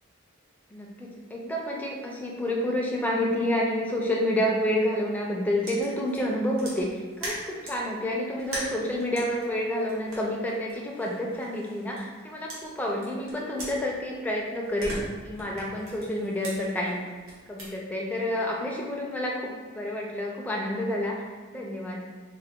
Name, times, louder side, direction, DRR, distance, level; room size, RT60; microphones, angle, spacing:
voice 1, 0.7-17.0 17.5-21.2 21.5-22.0, left 1 dB, 5° left, -2 dB, 0.4 m, -29 dB
sound 1, 5.6-7.9 8.4-12.2 12.5-14.3 14.6-17.7, right 1 dB, 75° right, 1.1 m, -40 dB
3.8 x 2.1 x 3.5 m, 1.4 s
head